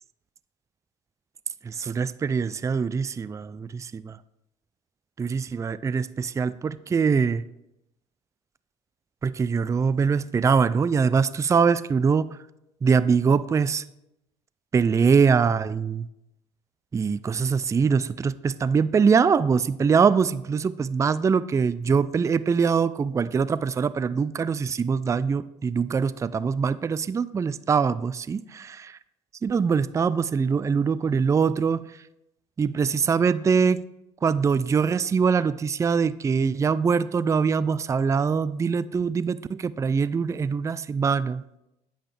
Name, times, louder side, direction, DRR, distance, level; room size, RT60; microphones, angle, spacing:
voice 1, 1.6-4.2 5.2-7.4 9.2-12.4 12.8-13.8 14.7-16.1 16.9-29.0 29.4-31.8 32.6-33.8 34.2-41.4, right 5 dB, 20° right, 17 dB, 0.3 m, -23 dB
8.8 x 7.8 x 3.3 m, 0.85 s
supercardioid pair, 80°, 15 cm